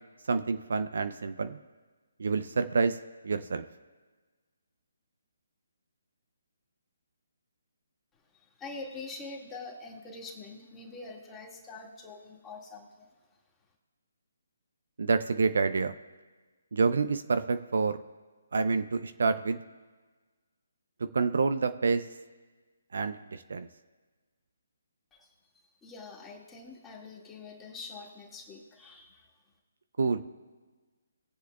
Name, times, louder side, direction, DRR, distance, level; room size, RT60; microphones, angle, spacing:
voice 1, 0.3-1.6 2.2-3.0 3.2-3.7 15.0-15.9 16.7-18.0 18.5-19.6 21.1-22.0 22.9-23.7 30.0-30.2, right 4 dB, 60° right, 10 dB, 0.6 m, -28 dB
voice 2, 8.6-13.1 25.1-25.3 25.8-29.2, left 3 dB, 10° left, -3 dB, 2.0 m, -45 dB
20.5 x 8.0 x 2.3 m, 1.4 s
figure-of-eight pair, 140°, 0 cm